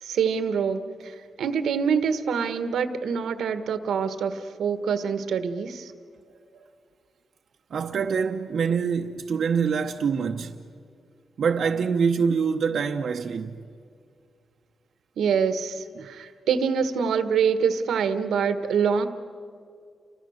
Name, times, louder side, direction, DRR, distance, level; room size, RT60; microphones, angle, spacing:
voice 1, 0.0-5.9 15.2-19.1, right 6 dB, 90° right, 1.5 m, -25 dB
voice 2, 7.7-10.6 11.4-13.6 16.0-16.1, right 6 dB, 65° right, 1.0 m, -25 dB
29.5 x 25.5 x 6.5 m
cardioid pair, 115°, 0 cm